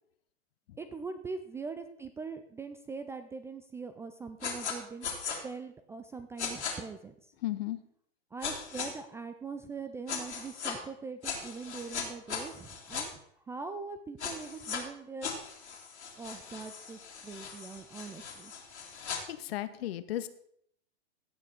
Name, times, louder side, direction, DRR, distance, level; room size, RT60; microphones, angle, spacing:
voice 1, 0.8-5.1 5.4-7.1 8.3-13.1 13.5-15.3 16.2-18.5, right 4 dB, 10° right, 10 dB, 0.3 m, -42 dB
sound 1, 4.4-4.7 5.0-5.4 6.4-6.7 8.4-8.9 10.1-10.7 11.2-13.0 14.2-14.8 15.2-19.2, left 6 dB, 85° left, 2.9 m, -38 dB
voice 2, 7.4-7.8 19.3-20.3, left 14 dB, 65° left, 13 dB, 1.0 m, -34 dB
16.0 x 6.0 x 4.3 m, 0.70 s
hypercardioid pair, 115°, 33 cm